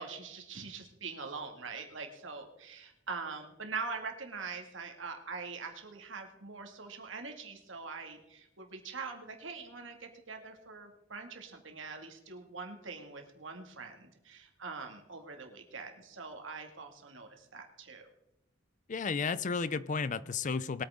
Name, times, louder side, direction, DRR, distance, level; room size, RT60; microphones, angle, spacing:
voice 1, 0.0-18.1, right 4 dB, 85° right, 3 dB, 2.2 m, -43 dB
voice 2, 18.9-20.8, left 5 dB, 40° left, 17 dB, 0.5 m, -33 dB
21.5 x 8.8 x 3.7 m, 0.88 s
head